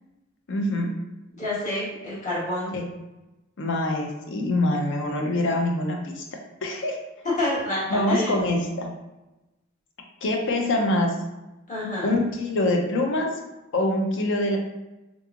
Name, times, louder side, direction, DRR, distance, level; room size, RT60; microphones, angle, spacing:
voice 1, 0.5-0.9 2.7-2.9 3.6-6.3 6.6-7.0 7.9-8.9 10.2-11.1 12.0-13.3 13.7-14.6, left 1 dB, 65° left, 2 dB, 0.6 m, -24 dB
voice 2, 1.3-2.7 6.7-6.8 7.2-8.3 11.7-12.1, left 1 dB, 35° left, -7 dB, 1.5 m, -28 dB
3.4 x 3.1 x 2.4 m, 1.0 s
head